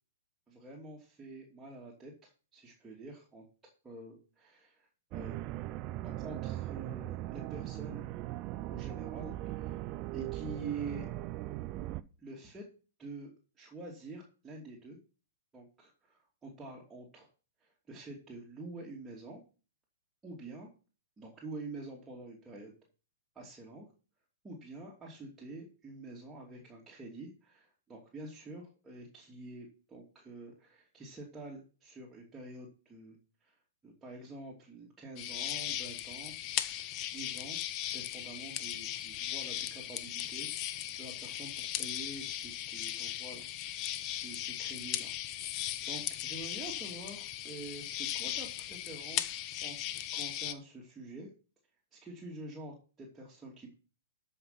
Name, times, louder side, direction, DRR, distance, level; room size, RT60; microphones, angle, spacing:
voice 1, 0.5-3.5 3.8-5.4 6.0-8.1 8.7-9.9 10.1-11.1 12.2-12.7 13.0-13.3 13.6-15.0 15.5-17.3 17.6-19.4 20.2-20.7 21.2-22.7 23.3-23.9 24.4-33.6 33.8-36.3 37.1-37.6 37.9-45.1 45.5-51.3 51.9-53.7, right 3 dB, 10° right, -4 dB, 2.8 m, -47 dB
sound 1, 5.1-12.0, right 15 dB, 35° right, 0.6 m, -39 dB
sound 2, 35.2-50.5, left 12 dB, 35° left, 0.9 m, -38 dB
13.0 x 5.6 x 5.9 m, 0.37 s
hypercardioid pair, 120°, 0 cm